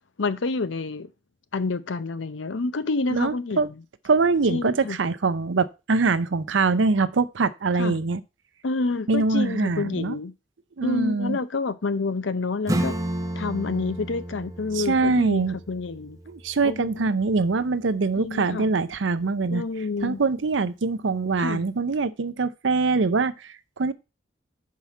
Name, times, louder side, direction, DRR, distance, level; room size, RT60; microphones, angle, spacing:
voice 1, 0.2-1.1 1.5-3.8 4.5-5.0 7.8-8.0 8.6-10.3 10.8-13.0 13.4-16.2 16.6-17.1 18.2-18.7 19.5-20.2 21.4-21.6, left 3 dB, 90° left, 0.7 m, -28 dB
voice 2, 3.1-3.7 4.0-8.2 9.1-10.2 10.8-11.4 14.7-15.6 16.3-19.6 20.0-23.9, right 4 dB, 80° right, 0.6 m, -23 dB
Acoustic guitar / Strum, 12.7-17.9, right 1 dB, 20° right, 0.8 m, -33 dB
5.7 x 4.7 x 5.8 m
head